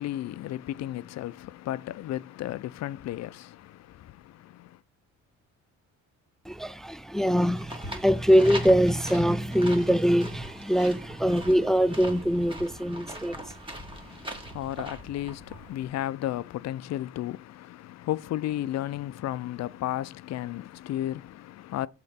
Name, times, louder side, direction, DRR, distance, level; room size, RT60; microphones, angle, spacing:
voice 1, 0.0-4.8 13.9-21.9, left 13 dB, 60° left, 0.5 m, -34 dB
voice 2, 6.5-13.5, equal, ahead, 0.4 m, -23 dB
sound 1, 7.5-15.9, right 1 dB, 15° right, 1.8 m, -41 dB
6.4 x 3.9 x 5.6 m
cardioid pair, 90°, 30 cm